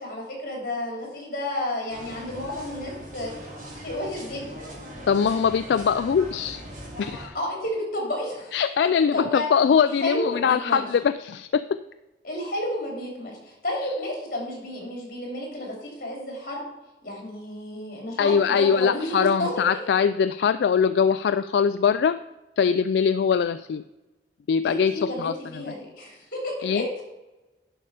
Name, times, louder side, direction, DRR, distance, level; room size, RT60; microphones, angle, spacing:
voice 1, 0.0-3.3 3.8-4.5 7.3-9.5 10.0-10.8 12.2-16.6 17.0-19.8 24.6-27.0, left 1 dB, 50° left, -1 dB, 3.3 m, -31 dB
sound 1, 1.9-7.3, equal, 45° right, 3.5 m, -40 dB
voice 2, 5.1-6.6 7.0-7.3 8.5-11.8 18.2-22.2 22.6-23.8 24.5-25.6 26.6-26.8, left 6 dB, 75° left, 12 dB, 0.3 m, -22 dB
11.0 x 5.5 x 5.0 m, 1.0 s
head